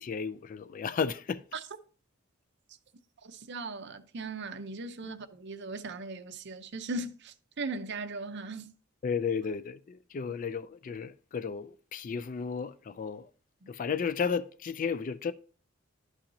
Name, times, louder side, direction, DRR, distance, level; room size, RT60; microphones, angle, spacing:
voice 1, 0.0-1.4 9.0-13.3 13.7-15.3, left 6 dB, 40° left, 0.3 m, -33 dB
voice 2, 3.2-8.7, right 3 dB, 60° right, 0.7 m, -38 dB
11.5 x 5.8 x 2.7 m
head